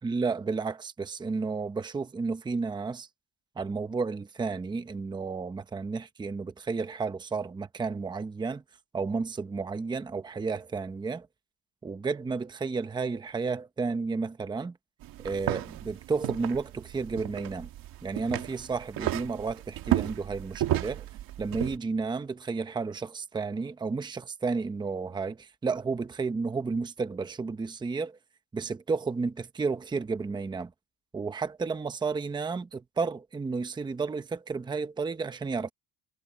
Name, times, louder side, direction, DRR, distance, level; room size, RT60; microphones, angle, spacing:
voice 1, 0.0-3.1 3.6-8.6 8.9-11.3 11.8-14.8 15.2-17.7 18.0-21.1 21.4-28.2 28.5-30.7 31.1-35.7, right 4 dB, 10° right, 0.8 m, -32 dB
sound 1, 15.0-21.8, right 14 dB, 50° right, 1.6 m, -33 dB
cardioid pair, 175°, 44 cm